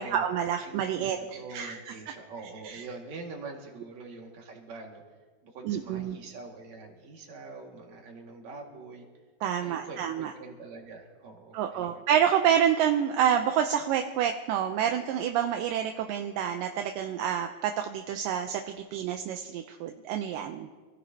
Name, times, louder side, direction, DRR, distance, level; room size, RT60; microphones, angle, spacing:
voice 1, 0.0-1.9 2.6-2.8 5.6-6.2 9.4-10.3 11.5-20.7, right 9 dB, 80° right, 5 dB, 2.2 m, -28 dB
voice 2, 0.7-5.0 5.4-9.1 9.6-12.0, right 3 dB, 55° right, 0 dB, 3.0 m, -44 dB
27.5 x 15.5 x 2.8 m, 1.4 s
omnidirectional pair, 4.3 m